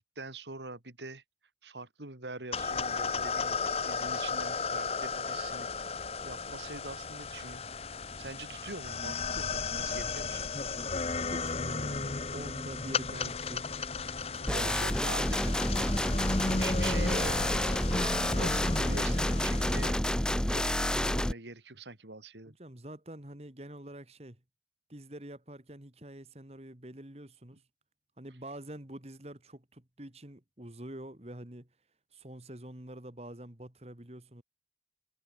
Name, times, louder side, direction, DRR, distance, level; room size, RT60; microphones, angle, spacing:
voice 1, 0.2-1.2 1.6-7.6 8.2-10.5 14.3-17.8 18.2-20.1 20.5-22.5, right 3 dB, 85° right, 3.5 m, -44 dB
sound 1, 2.5-19.9, left 4 dB, 35° left, 0.9 m, -34 dB
voice 2, 11.3-13.7 14.3-15.1 22.5-24.4 24.9-27.6 28.2-31.7 32.1-34.4, right 1 dB, 35° right, 2.2 m, -46 dB
sound 2, 14.5-21.3, left 1 dB, 5° left, 0.5 m, -29 dB
head